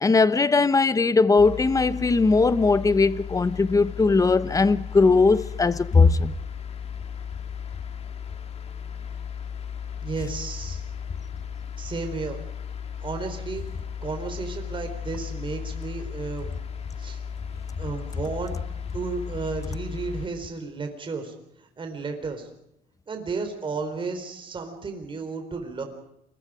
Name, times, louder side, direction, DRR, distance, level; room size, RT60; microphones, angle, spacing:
voice 1, 0.0-6.3, left 4 dB, 20° left, 1.0 m, -19 dB
sound 1, 1.4-20.3, left 7 dB, 40° left, 2.3 m, -36 dB
voice 2, 10.0-10.9 11.8-12.4 13.0-13.6 14.0-16.6 17.0-17.2 17.8-18.5 18.9-22.5 23.1-25.8, right 4 dB, 30° right, 4.2 m, -33 dB
29.5 x 23.0 x 5.0 m
cardioid pair, 110°, 17 cm